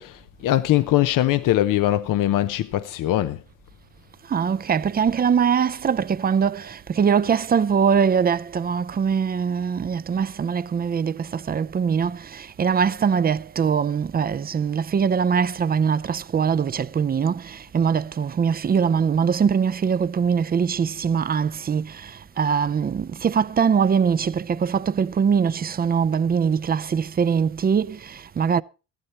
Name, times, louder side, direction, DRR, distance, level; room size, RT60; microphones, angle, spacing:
voice 1, 0.0-3.4, left 14 dB, 75° left, 0.8 m, -21 dB
voice 2, 4.2-28.6, right 6 dB, 30° right, 0.5 m, -22 dB
14.5 x 12.0 x 4.2 m
cardioid pair, 85°, 32 cm